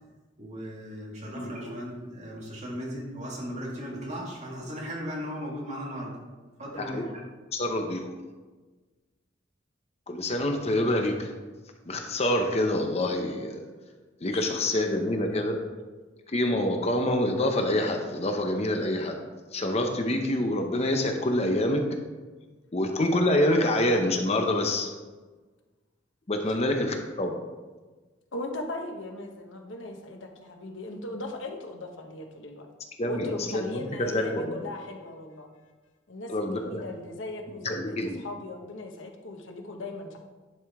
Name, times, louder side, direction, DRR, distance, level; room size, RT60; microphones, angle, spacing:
voice 1, 0.4-6.2 6.6-7.2, equal, 40° right, -3 dB, 2.1 m, -37 dB
voice 2, 6.7-7.1 7.5-8.0 10.1-11.3 11.9-13.6 14.2-15.6 16.3-19.2 19.5-21.9 22.7-24.9 26.3-27.4 33.0-33.6 34.0-34.6 36.3-36.8 37.6-38.2, left 1 dB, 35° left, 4 dB, 0.7 m, -26 dB
voice 3, 28.3-32.7 33.1-35.5 36.1-40.2, left 2 dB, 90° left, 3 dB, 1.1 m, -38 dB
10.5 x 5.0 x 3.6 m, 1.3 s
head